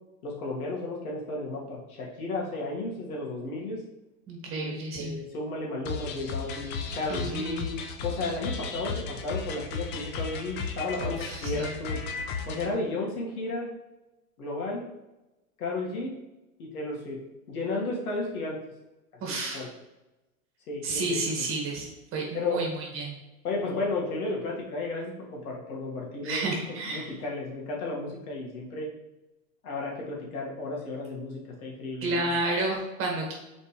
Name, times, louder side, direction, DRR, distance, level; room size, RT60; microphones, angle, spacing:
voice 1, 0.2-3.8 4.6-7.8 8.0-12.0 12.5-13.7 14.4-14.8 15.6-16.1 16.6-17.2 17.5-18.6 19.3-19.7 20.7-21.5 22.3-22.7 23.4-26.6 26.9-28.9 29.6-32.2, left 2 dB, 75° left, -2 dB, 2.2 m, -33 dB
voice 2, 4.3-5.2 7.1-7.7 11.0-11.7 19.2-19.6 20.8-23.1 26.2-27.1 32.0-33.3, right 2 dB, 30° right, -1 dB, 1.8 m, -31 dB
sound 1, 5.8-12.7, left 5 dB, 25° left, 0.5 m, -35 dB
6.9 x 4.3 x 3.3 m, 0.99 s
hypercardioid pair, 130°, 44 cm